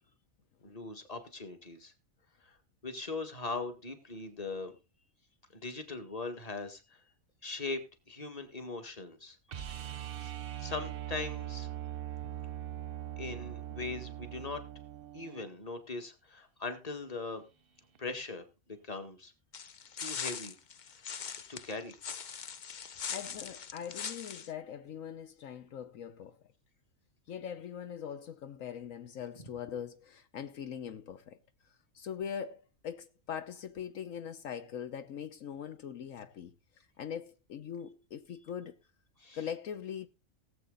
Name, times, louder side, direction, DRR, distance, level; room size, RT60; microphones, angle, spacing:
voice 1, 0.6-1.9 2.4-2.6 2.8-4.7 5.5-7.0 7.4-9.4 9.9-10.3 10.6-11.7 13.2-14.6 15.1-17.4 18.0-19.3 20.0-20.6 21.5-21.9 39.2-39.4, left 3 dB, 30° left, 1.9 m, -40 dB
sound 1, 9.5-15.5 18.0-18.1, right 12 dB, 50° right, 0.8 m, -41 dB
sound 2, 19.5-24.5, left 7 dB, 45° left, 0.7 m, -41 dB
voice 2, 23.1-26.4 27.3-31.4 31.9-36.5 37.0-38.8 39.3-40.1, left 8 dB, 75° left, 1.2 m, -41 dB
18.0 x 7.9 x 4.0 m
omnidirectional pair, 1.4 m